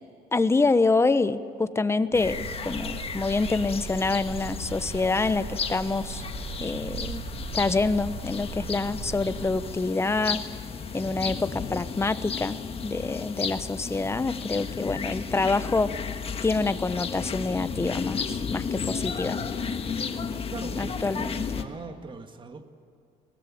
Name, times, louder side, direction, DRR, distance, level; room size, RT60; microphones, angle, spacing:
voice 1, 0.3-6.2 6.6-7.2 7.5-10.4 10.9-15.9 16.4-19.4 20.8-21.3, left 3 dB, 15° left, 13 dB, 0.9 m, -26 dB
sound 1, 2.1-21.6, left 6 dB, 35° left, 1.5 m, -34 dB
sound 2, 2.1-9.6, right 5 dB, 75° right, 3.7 m, -39 dB
voice 2, 20.5-22.7, right 4 dB, 30° right, 7 dB, 1.8 m, -40 dB
21.5 x 19.0 x 8.5 m, 2.5 s
cardioid pair, 110°, 17 cm